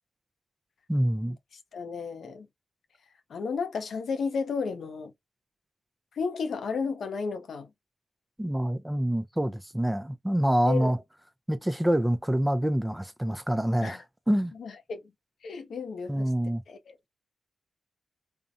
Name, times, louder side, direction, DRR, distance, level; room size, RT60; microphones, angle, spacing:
voice 1, 0.9-1.4 8.4-11.0 11.5-14.5 16.1-16.6, equal, 10° right, 0.4 m, -26 dB
voice 2, 1.7-2.5 3.3-5.1 6.1-7.7 10.7-10.9 13.8-14.0 14.5-15.1 15.4-16.3 16.7-16.8, left 5 dB, 75° left, 0.5 m, -33 dB
2.6 x 2.0 x 2.5 m
supercardioid pair, 45°, 0 cm